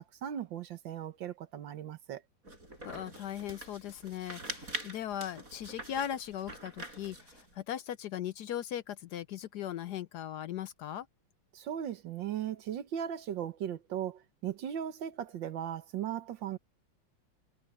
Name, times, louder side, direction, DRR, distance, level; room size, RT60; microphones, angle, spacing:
voice 1, 0.0-2.2 11.5-16.6, right 10 dB, 75° right, 1.8 m, -37 dB
sound 1, 2.4-7.5, right 1 dB, 45° right, 6.7 m, -44 dB
voice 2, 2.8-11.1, left 10 dB, 70° left, 1.1 m, -38 dB
omnidirectional pair, 2.1 m